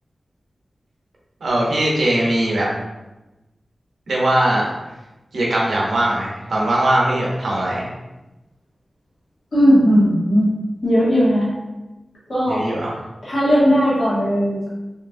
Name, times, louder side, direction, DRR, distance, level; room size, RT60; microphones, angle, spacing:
voice 1, 1.4-2.7 4.1-4.6 5.3-7.9 12.5-12.9, right 1 dB, 90° right, -4 dB, 0.7 m, -20 dB
voice 2, 9.5-10.5 10.8-11.5 12.3-12.6 13.2-14.7, equal, 70° left, -9 dB, 1.3 m, -17 dB
2.8 x 2.4 x 2.4 m, 1.1 s
wide cardioid pair, 85°, 0 cm